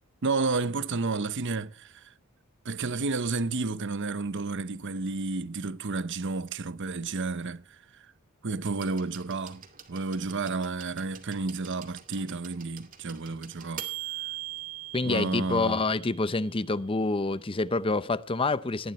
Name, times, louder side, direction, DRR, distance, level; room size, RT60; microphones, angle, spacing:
voice 1, 0.2-2.1 2.6-7.6 7.9-8.1 8.4-9.6 9.9-13.9 15.0-15.8, right 3 dB, 55° right, 0.8 m, -31 dB
sound 1, 8.8-16.6 17.7-17.8, right 14 dB, 40° right, 2.3 m, -42 dB
voice 2, 14.9-18.9, left 3 dB, 25° left, 0.6 m, -27 dB
19.0 x 13.5 x 3.1 m
head